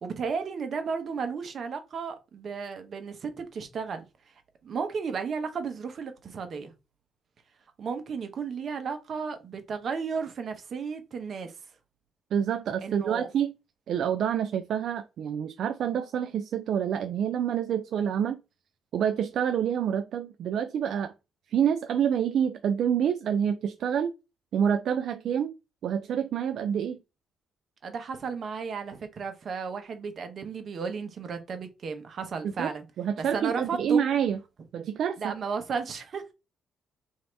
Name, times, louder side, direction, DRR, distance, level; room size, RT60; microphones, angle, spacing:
voice 1, 0.0-4.0 4.6-6.7 7.8-11.5 12.8-13.3 27.8-32.8 33.2-34.0 35.2-36.3, right 5 dB, 50° right, 0.9 m, -34 dB
voice 2, 12.3-13.5 13.9-18.4 18.9-21.1 21.5-24.1 24.5-25.5 25.8-27.0 32.4-32.7 33.0-34.4 34.7-35.3, right 8 dB, 70° right, 0.3 m, -27 dB
3.1 x 2.8 x 4.4 m
cardioid pair, 90°, 0 cm